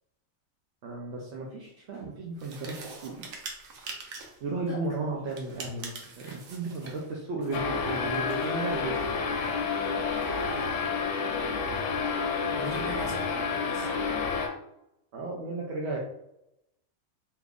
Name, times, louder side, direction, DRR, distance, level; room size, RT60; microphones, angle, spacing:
voice 1, 0.8-3.3 4.4-9.6 15.1-16.0, right 3 dB, 65° right, -3 dB, 0.8 m, -35 dB
sound 1, 1.2-1.3 1.8-2.2 3.9-4.1 4.3-4.4 4.7-13.5, left 1 dB, 15° left, 1.3 m, -50 dB
sound 2, 2.4-4.4 5.3-7.1, right 4 dB, 85° right, 1.1 m, -43 dB
sound 3, 7.5-14.5, left 5 dB, 70° left, 0.9 m, -29 dB
voice 2, 10.4-10.8 12.5-14.0, left 2 dB, 45° left, 0 dB, 0.6 m, -41 dB
3.0 x 2.4 x 3.5 m, 0.82 s
omnidirectional pair, 1.4 m